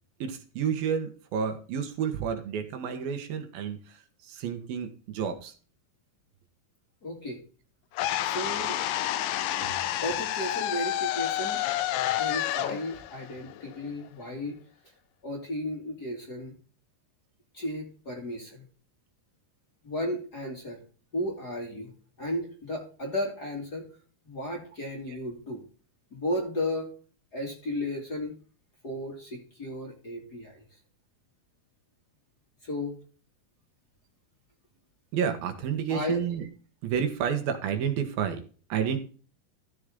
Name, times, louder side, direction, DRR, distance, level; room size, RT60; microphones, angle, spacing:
voice 1, 0.2-5.5 9.6-9.7 35.1-36.5 36.8-38.4 38.7-39.0, right 7 dB, 75° right, 7 dB, 3.2 m, -30 dB
voice 2, 7.0-7.4 8.2-8.8 10.0-11.6 12.2-14.6 15.2-16.5 17.5-18.6 19.8-20.8 21.1-21.9 22.2-23.9 24.2-25.6 26.1-26.9 27.3-28.3 28.8-30.6 32.6-33.0 35.9-36.3, left 1 dB, 30° left, 1 dB, 2.5 m, -34 dB
sound 1, 8.0-14.1, left 13 dB, 75° left, 2.3 m, -29 dB
14.0 x 6.7 x 3.7 m, 0.38 s
omnidirectional pair, 4.4 m